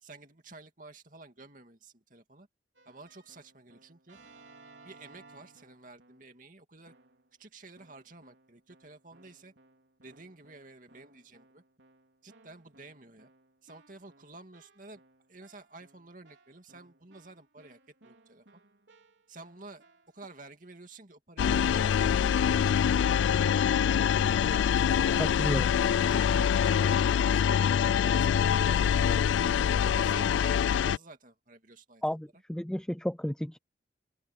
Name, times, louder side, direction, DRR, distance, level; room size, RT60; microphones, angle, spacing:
voice 1, 0.0-2.5 2.9-4.2 4.8-6.9 7.4-9.5 10.0-11.6 12.2-13.3 13.6-15.0 15.3-18.6 19.3-19.8 20.1-21.8 22.2-25.6 26.1-27.7 28.0-29.4 29.9-32.0, right 3 dB, 45° right, 2.6 m, -51 dB
Keyboard (musical), 2.8-6.4 6.9-7.4 7.8-20.3, right 3 dB, 75° right, 4.1 m, -61 dB
sound 1, 21.4-31.0, left 8 dB, 85° left, 0.3 m, -25 dB
voice 2, 25.2-25.7 32.0-33.6, equal, 5° left, 0.3 m, -32 dB
open air
head